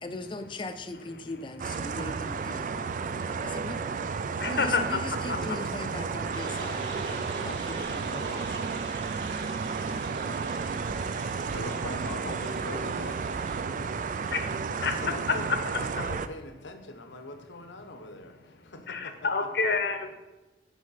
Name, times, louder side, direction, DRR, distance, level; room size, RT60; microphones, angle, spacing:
voice 1, 0.0-2.7 3.4-3.8 4.4-8.6 10.2-10.4, left 2 dB, 25° left, 8 dB, 0.5 m, -39 dB
sound 1, 1.6-16.3, right 5 dB, 45° right, 0.3 m, -32 dB
voice 2, 4.4-4.8 5.3-5.4 14.3-14.4 14.8-14.9 18.9-20.1, left 4 dB, 60° left, 7 dB, 0.8 m, -28 dB
sound 2, 6.3-13.6, right 2 dB, 80° right, 1.4 m, -46 dB
voice 3, 11.5-13.2 14.6-18.3 18.6-19.3, left 2 dB, 85° left, 6 dB, 0.9 m, -41 dB
6.3 x 5.1 x 5.6 m, 1.1 s
head